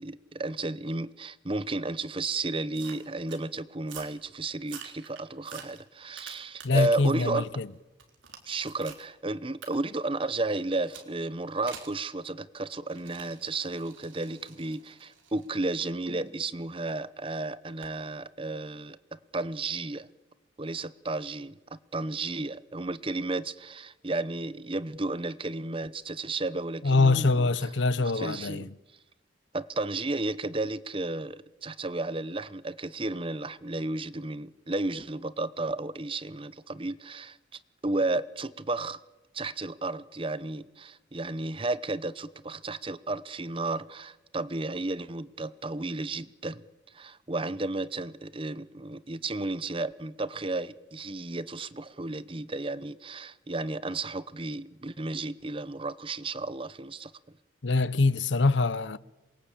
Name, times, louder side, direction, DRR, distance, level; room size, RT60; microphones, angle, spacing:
voice 1, 0.0-7.5 8.5-20.1 20.6-27.7 28.0-28.7 29.5-37.4 37.8-39.0 39.3-46.6 46.9-57.1, right 2 dB, 30° right, 0.9 m, -33 dB
sound 1, 2.7-3.4 3.8-4.2 4.6-7.1 7.5-9.1 9.6-9.7 10.9-11.1 11.7-12.0 12.9-16.8 17.8-18.0, right 7 dB, 85° right, 4.1 m, -48 dB
voice 2, 6.6-7.7 26.8-28.7 57.6-59.0, left 3 dB, 70° left, 0.8 m, -24 dB
27.5 x 22.5 x 8.7 m
head